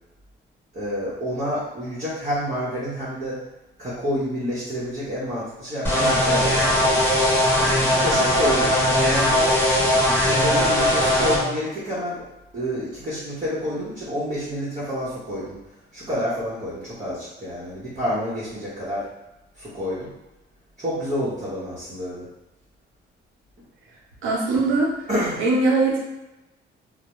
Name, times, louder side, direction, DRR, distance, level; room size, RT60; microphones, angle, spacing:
voice 1, 0.7-3.4 3.8-6.9 7.8-9.5 10.1-12.3 12.5-15.6 15.9-19.1 19.6-20.1 20.8-22.3 25.1-25.4, equal, 40° right, -10 dB, 0.9 m, -28 dB
sound 1, 5.8-11.4, left 1 dB, 10° left, 0.9 m, -19 dB
voice 2, 24.2-24.9 25.4-26.0, right 3 dB, 85° right, -2 dB, 0.7 m, -20 dB
2.2 x 2.0 x 2.9 m, 0.99 s
cardioid pair, 90°, 20 cm